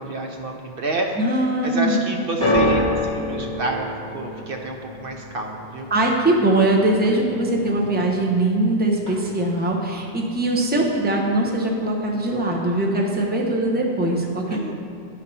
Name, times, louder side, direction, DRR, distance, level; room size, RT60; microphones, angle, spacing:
voice 1, 0.0-1.1 1.6-3.9 4.1-5.9 14.5-14.7, right 2 dB, 60° right, 2 dB, 0.8 m, -28 dB
voice 2, 1.2-2.0 5.9-14.7, right 1 dB, 10° right, -1 dB, 0.7 m, -21 dB
sound 1, 2.4-8.7 8.9-9.6 10.3-10.4, left 1 dB, 25° right, 2.3 m, -28 dB
10.5 x 4.1 x 5.5 m, 2.3 s
omnidirectional pair, 1.1 m